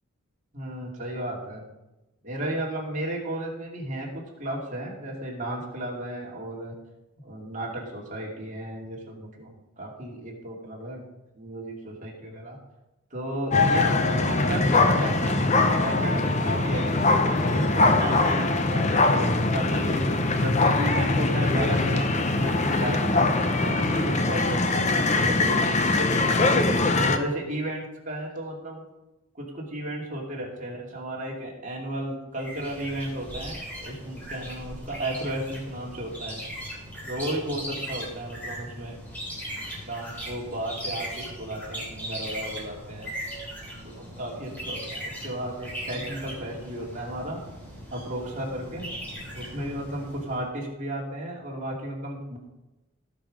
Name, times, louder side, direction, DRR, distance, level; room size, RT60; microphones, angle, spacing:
voice 1, 0.5-1.6 2.2-6.7 7.2-11.0 11.3-12.6 13.1-20.0 20.4-26.5 26.9-28.8 29.3-36.4 37.0-39.0 39.5-43.2 43.8-47.4 47.9-48.9 49.3-52.4, right 1 dB, 35° right, -2 dB, 2.6 m, -34 dB
sound 1, 13.5-27.2, left 2 dB, 30° left, 0.7 m, -22 dB
sound 2, 32.4-50.4, equal, 5° left, 3.2 m, -38 dB
17.0 x 5.6 x 5.2 m, 1.0 s
head